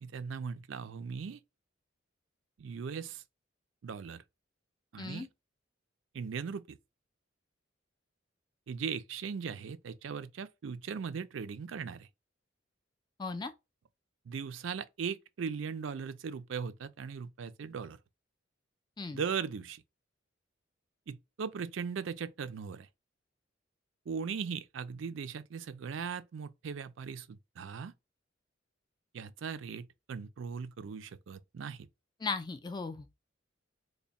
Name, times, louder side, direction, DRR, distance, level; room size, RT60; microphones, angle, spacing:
voice 1, 0.0-1.4 2.6-3.2 3.8-4.2 4.9-5.3 6.1-6.8 8.7-12.1 14.3-18.0 19.1-19.8 21.1-22.9 24.1-27.3 27.6-27.9 29.1-31.9, right 6 dB, 80° right, 0.4 m, -38 dB
voice 2, 5.0-5.3 13.2-13.5 19.0-19.2 32.2-33.1, left 4 dB, 20° left, 0.4 m, -37 dB
3.3 x 2.1 x 4.0 m
head